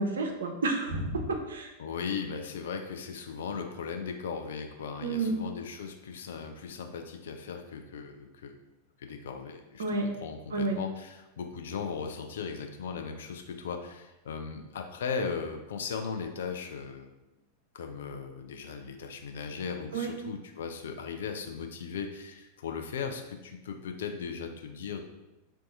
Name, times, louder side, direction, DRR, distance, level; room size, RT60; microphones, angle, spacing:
voice 1, 0.0-1.7 5.0-5.3 9.8-10.1 10.5-10.8 19.9-20.1, right 3 dB, 65° right, 3 dB, 0.5 m, -30 dB
voice 2, 1.8-8.5 9.0-17.1 17.7-25.1, left 5 dB, 60° left, 5 dB, 0.4 m, -37 dB
2.7 x 2.2 x 4.0 m, 0.99 s
figure-of-eight pair, 90°, 0 cm